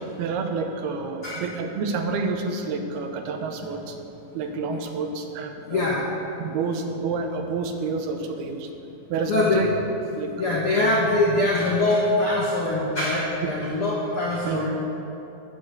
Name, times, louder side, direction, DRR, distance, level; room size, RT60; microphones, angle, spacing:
voice 1, 0.2-4.0 4.3-5.9 6.4-8.7 9.1-9.7 10.2-10.6 13.4-13.5 14.4-14.7, right 4 dB, 80° right, 5 dB, 2.9 m, -29 dB
voice 2, 5.7-6.0 9.3-9.6 10.4-14.7, left 2 dB, 70° left, -4 dB, 1.3 m, -23 dB
10.0 x 9.9 x 7.9 m, 2.9 s
omnidirectional pair, 4.5 m